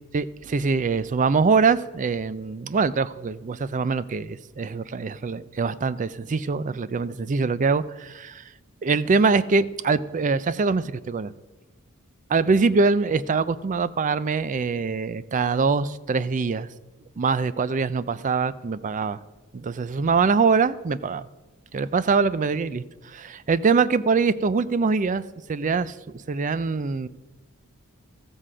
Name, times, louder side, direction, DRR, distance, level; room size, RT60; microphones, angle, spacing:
voice 1, 0.1-8.4 8.8-11.3 12.3-16.7 17.2-19.2 19.5-21.3 21.7-25.2 25.5-27.1, right 4 dB, 35° right, 16 dB, 0.4 m, -23 dB
14.0 x 7.6 x 4.9 m, 1.1 s
head